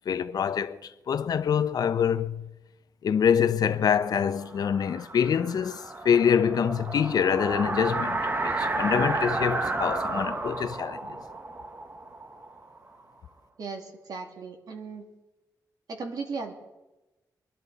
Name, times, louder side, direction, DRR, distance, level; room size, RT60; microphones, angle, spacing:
voice 1, 0.1-2.5 3.0-11.2, left 7 dB, 65° left, 0.6 m, -25 dB
sound 1, 4.2-13.0, right 2 dB, 30° right, 1.0 m, -32 dB
voice 2, 13.6-15.1 15.9-16.5, right 4 dB, 65° right, 2.3 m, -36 dB
23.0 x 12.5 x 4.0 m
wide cardioid pair, 140°, 7 cm